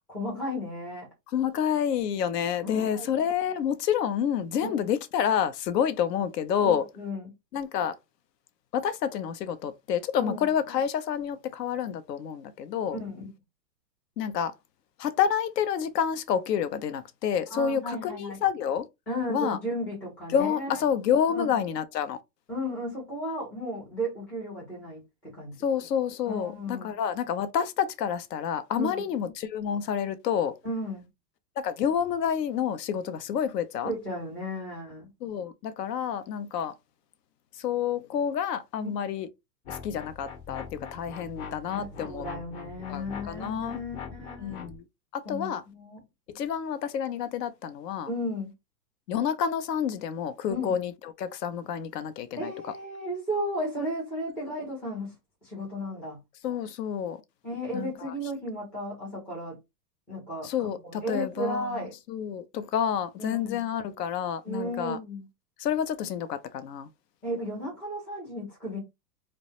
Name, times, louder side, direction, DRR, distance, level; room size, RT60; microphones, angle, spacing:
voice 1, 0.1-1.1 2.6-3.1 4.6-4.9 6.6-7.3 10.2-10.4 12.9-13.2 17.5-18.4 19.1-20.8 21.3-21.5 22.5-25.6 26.3-26.9 28.7-29.1 30.6-31.1 33.8-35.1 38.8-38.9 41.7-44.6 45.2-46.0 48.1-48.5 50.5-50.7 52.3-55.1 55.4-56.2 57.4-59.6 60.1-60.5 60.8-61.9 63.2-63.7 64.4-65.2 67.2-68.8, equal, 5° left, 0.3 m, -34 dB
voice 2, 1.3-6.8 7.5-7.9 8.7-13.0 14.2-14.5 15.0-18.9 19.3-19.6 20.3-22.2 25.6-30.6 31.6-33.9 35.2-36.7 37.5-39.3 39.7-42.2 42.9-43.8 44.4-44.8 45.1-45.6 46.3-48.1 49.1-52.5 56.4-57.2 57.7-58.1 60.4-65.0 65.6-66.9, left 8 dB, 75° left, 0.6 m, -29 dB
sound 1, 39.6-44.8, left 5 dB, 45° left, 0.9 m, -42 dB
2.2 x 2.0 x 2.7 m
hypercardioid pair, 115°, 49 cm